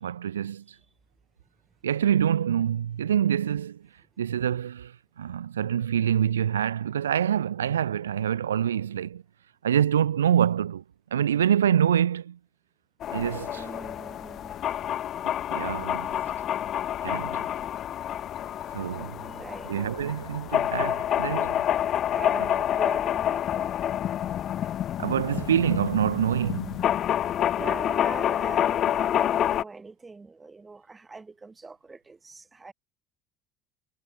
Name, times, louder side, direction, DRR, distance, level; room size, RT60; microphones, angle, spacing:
voice 1, 0.0-0.8 1.8-3.8 4.2-9.2 9.6-10.8 11.1-12.4 13.1-13.6 15.5-16.2 17.0-17.4 18.7-19.2 19.7-21.7 25.0-26.8, right 9 dB, 85° right, 0.8 m, -26 dB
sound 1, 13.0-29.6, left 11 dB, 50° left, 1.9 m, -28 dB
voice 2, 13.5-14.6 19.2-19.8 22.1-23.7 27.6-32.7, right 3 dB, 20° right, 5.6 m, -41 dB
hypercardioid pair, 70°, 0 cm